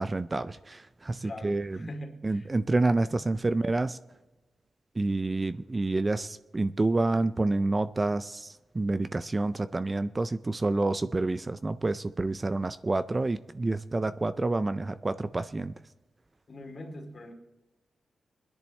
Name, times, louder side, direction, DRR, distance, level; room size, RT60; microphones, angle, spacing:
voice 1, 0.0-1.8 2.2-4.0 5.0-15.7, right 2 dB, 25° right, 13 dB, 0.3 m, -28 dB
voice 2, 1.2-2.5 3.1-3.2 16.5-17.3, left 1 dB, 45° left, 2 dB, 2.4 m, -42 dB
22.0 x 10.5 x 3.2 m, 1.1 s
wide cardioid pair, 125°, 0 cm